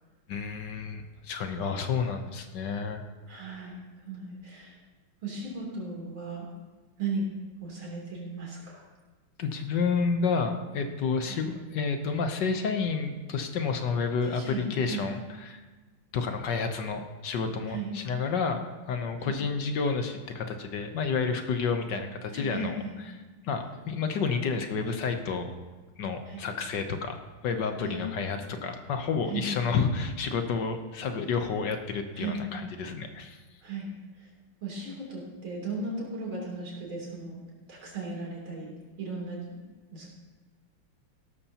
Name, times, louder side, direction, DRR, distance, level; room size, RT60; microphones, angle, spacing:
voice 1, 0.3-3.0 9.4-15.2 15.5-15.6 16.1-18.6 18.9-22.8 23.4-25.5 26.0-27.2 27.4-33.4, left 5 dB, 65° left, 6 dB, 1.4 m, -30 dB
voice 2, 3.3-4.8 5.2-6.5 7.0-7.3 7.6-8.8 11.2-11.4 14.2-15.0 17.7-18.0 19.2-19.4 22.3-23.0 26.3-26.5 27.8-28.0 29.3-29.5 32.1-32.4 33.6-33.9 34.2-34.3 34.6-37.4 37.7-38.7 39.0-39.6 39.9-40.1, right 3 dB, 80° right, -3 dB, 4.1 m, -36 dB
16.5 x 12.5 x 2.9 m, 1.3 s
omnidirectional pair, 2.2 m